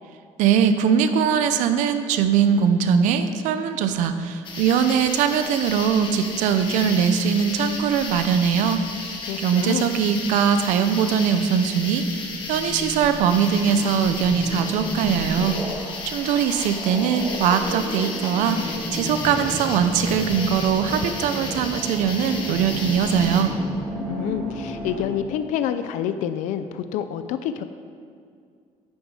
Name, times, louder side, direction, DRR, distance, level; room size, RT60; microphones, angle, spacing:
voice 1, 0.4-15.6 16.1-23.5, right 7 dB, 85° right, 9 dB, 0.7 m, -21 dB
sound 1, 4.4-23.4, left 3 dB, 40° left, 1.3 m, -34 dB
sound 2, 9.2-25.2, right 1 dB, 5° left, 1.6 m, -33 dB
voice 2, 9.3-9.9 24.1-27.6, left 9 dB, 80° left, 10 dB, 0.5 m, -28 dB
9.0 x 8.1 x 4.9 m, 2.2 s
cardioid pair, 175°, 13 cm